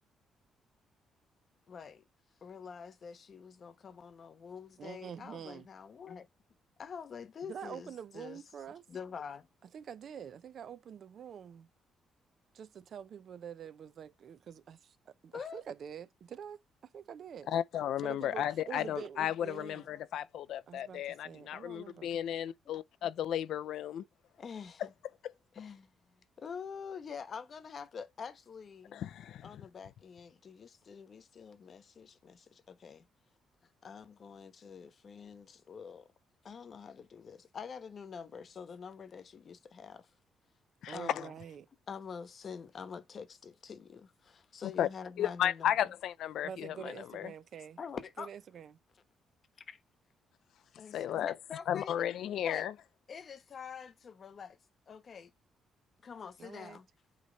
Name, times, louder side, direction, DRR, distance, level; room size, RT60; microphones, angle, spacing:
voice 1, 1.7-2.0 2.4-6.3 6.8-8.4 8.9-9.5 15.3-15.6 24.4-24.9 25.5-29.1 29.4-33.0 33.8-36.1 36.4-40.1 40.9-41.3 41.9-45.9 47.8-48.3 49.7-49.8 50.7-52.1 52.4-52.7 53.1-54.6 54.9-55.3 56.0-56.9, left 6 dB, 50° left, 1.0 m, -46 dB
voice 2, 4.8-5.7 7.4-8.9 9.7-11.7 12.5-17.5 18.0-19.8 20.7-22.1 40.9-41.7 46.4-47.8 48.2-48.8 56.4-56.8, right 8 dB, 60° right, 0.6 m, -46 dB
voice 3, 17.5-24.0 28.9-29.5 40.8-41.0 44.6-44.9 45.2-47.3 50.9-51.3 51.7-52.7, left 10 dB, 75° left, 0.4 m, -34 dB
8.6 x 3.1 x 3.9 m
cardioid pair, 90°, 0 cm